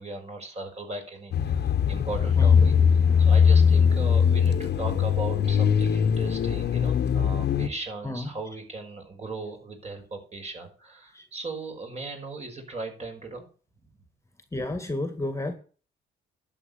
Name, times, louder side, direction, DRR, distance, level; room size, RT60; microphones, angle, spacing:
voice 1, 0.0-2.7 3.2-13.5, right 3 dB, 35° right, 3 dB, 5.6 m, -38 dB
sound 1, 1.3-7.7, left 7 dB, 55° left, 1.3 m, -21 dB
voice 2, 2.4-2.7 8.0-8.3 11.1-11.2 14.5-15.5, left 2 dB, 15° left, 8 dB, 2.0 m, -31 dB
11.5 x 8.0 x 6.6 m, 0.39 s
cardioid pair, 90°, 20 cm